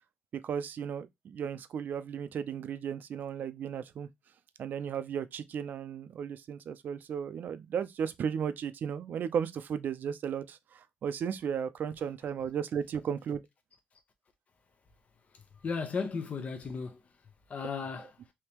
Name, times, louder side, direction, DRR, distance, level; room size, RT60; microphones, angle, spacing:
voice 1, 0.3-4.1 4.6-13.4, right 7 dB, 65° right, 0.5 m, -35 dB
voice 2, 15.6-17.0 17.5-18.2, left 5 dB, 45° left, 0.7 m, -35 dB
3.5 x 2.8 x 2.9 m
cardioid pair, 80°, 3 cm